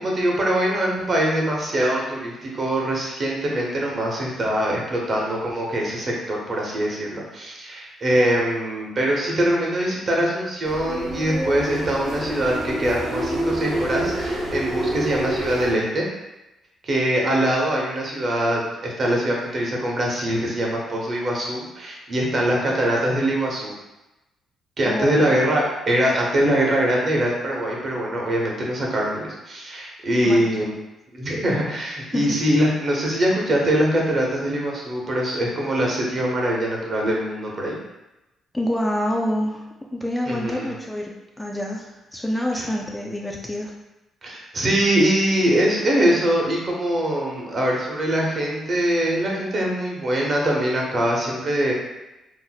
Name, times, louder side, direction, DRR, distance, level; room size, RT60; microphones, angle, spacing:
voice 1, 0.0-16.1 16.8-23.7 24.8-30.7 31.1-37.8 40.3-40.7 42.5-42.6 44.2-51.7, right 1 dB, 45° right, -2 dB, 0.9 m, -23 dB
sound 1, 10.6-15.7, right 1 dB, 75° right, 1.0 m, -27 dB
voice 2, 24.9-25.4 30.2-30.5 32.1-32.3 38.5-43.7, equal, 10° left, -1 dB, 0.4 m, -27 dB
2.6 x 2.1 x 3.9 m, 0.99 s
cardioid pair, 90°, 0 cm